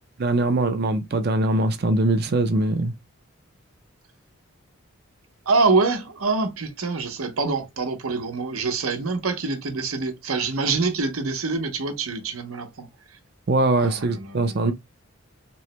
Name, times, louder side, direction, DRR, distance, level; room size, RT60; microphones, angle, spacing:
voice 1, 0.2-2.9 13.5-14.7, right 2 dB, 45° right, 0.5 m, -22 dB
voice 2, 5.5-12.9 13.8-14.7, right 4 dB, 85° right, 0.7 m, -25 dB
3.0 x 2.1 x 2.9 m
head